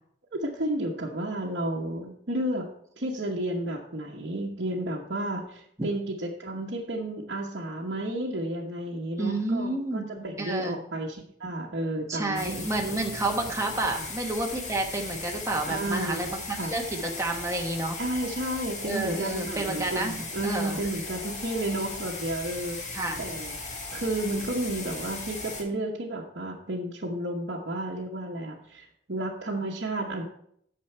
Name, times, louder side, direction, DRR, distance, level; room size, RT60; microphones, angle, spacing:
voice 1, 0.3-2.7 3.0-12.7 13.9-14.0 15.7-16.7 18.0-23.6 23.9-30.2, right 1 dB, 65° right, -3 dB, 1.1 m, -32 dB
voice 2, 9.2-10.1 10.4-10.8 12.1-16.4 16.7-18.0 18.9-20.8 22.9-23.2, right 2 dB, 15° right, 1 dB, 1.3 m, -30 dB
sound 1, 12.3-25.6, left 3 dB, 40° left, 1.7 m, -37 dB
9.4 x 6.8 x 4.4 m, 0.69 s
head